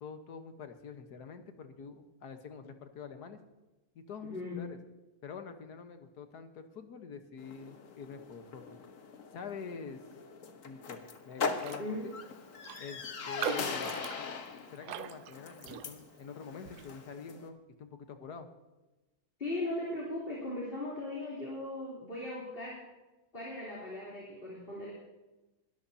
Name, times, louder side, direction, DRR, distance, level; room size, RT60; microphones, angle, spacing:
voice 1, 0.0-3.4 4.0-4.8 5.2-8.6 9.3-10.0 10.6-12.0 12.8-13.9 14.7-18.5, left 6 dB, 80° left, 7 dB, 1.8 m, -46 dB
voice 2, 4.2-4.6 11.8-12.0 13.5-13.6 19.4-22.8 23.3-24.9, left 2 dB, 35° left, -6 dB, 3.6 m, -38 dB
sound 1, 7.4-17.5, left 5 dB, 55° left, 1.5 m, -41 dB
Raindrop, 11.5-11.9 12.2-12.3 12.6-16.2 16.7-16.9, right 13 dB, 90° right, 1.2 m, -41 dB
21.5 x 13.5 x 2.8 m, 1.1 s
omnidirectional pair, 1.7 m